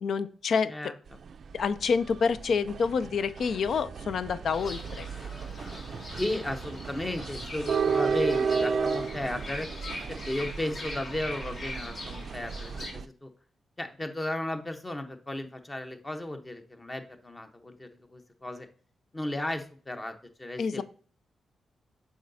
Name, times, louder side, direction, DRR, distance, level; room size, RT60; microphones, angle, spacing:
voice 1, 0.0-0.7 1.5-5.1 20.6-20.8, left 5 dB, 70° left, 14 dB, 0.4 m, -28 dB
voice 2, 0.7-1.2 6.2-9.7 10.1-13.3 13.8-18.7 19.1-20.8, left 1 dB, 20° left, 6 dB, 0.9 m, -35 dB
sound 1, 1.1-13.0, right 5 dB, 65° right, 0.4 m, -33 dB
Fowl / Bird, 4.5-12.9, left 2 dB, 50° left, 1.7 m, -42 dB
7.3 x 4.8 x 2.7 m, 0.43 s
cardioid pair, 80°, 0 cm